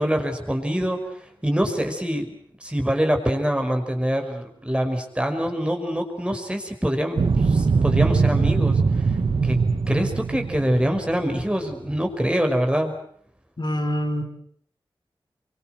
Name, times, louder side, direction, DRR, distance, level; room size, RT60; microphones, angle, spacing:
voice 1, 0.0-8.8 9.4-9.6 9.9-12.9, equal, 10° right, 4 dB, 5.4 m, -25 dB
sound 1, 7.2-11.9, right 4 dB, 80° right, 1.7 m, -22 dB
voice 2, 13.6-14.2, equal, 55° left, 4 dB, 4.7 m, -25 dB
26.0 x 24.0 x 7.9 m, 0.65 s
cardioid pair, 50°, 9 cm